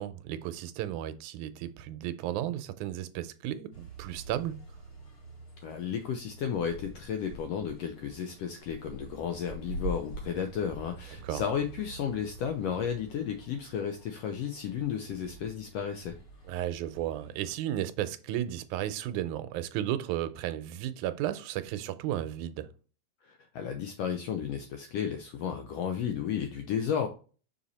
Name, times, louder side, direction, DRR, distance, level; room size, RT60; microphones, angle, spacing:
voice 1, 0.0-4.6 11.2-11.4 16.5-22.7, right 12 dB, 85° right, 2.0 m, -34 dB
sound 1, 3.7-17.5, right 2 dB, 35° left, 2.0 m, -45 dB
voice 2, 5.6-16.2 23.2-27.1, left 8 dB, 80° left, 1.4 m, -33 dB
5.8 x 4.0 x 4.1 m
omnidirectional pair, 3.5 m